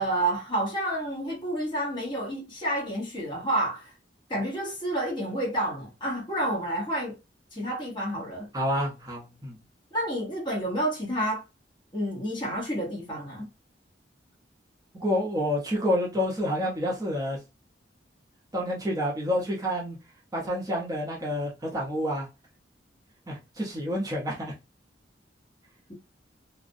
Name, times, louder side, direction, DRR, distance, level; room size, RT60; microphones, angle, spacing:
voice 1, 0.0-3.9 4.3-7.2 7.5-8.5 9.9-11.4 11.9-13.5, right 1 dB, 25° left, 0.9 m, -29 dB
voice 2, 8.5-9.6 14.9-17.4 18.5-20.0 20.3-22.3 23.3-24.5, equal, 20° right, 0.6 m, -28 dB
2.4 x 2.0 x 2.5 m
head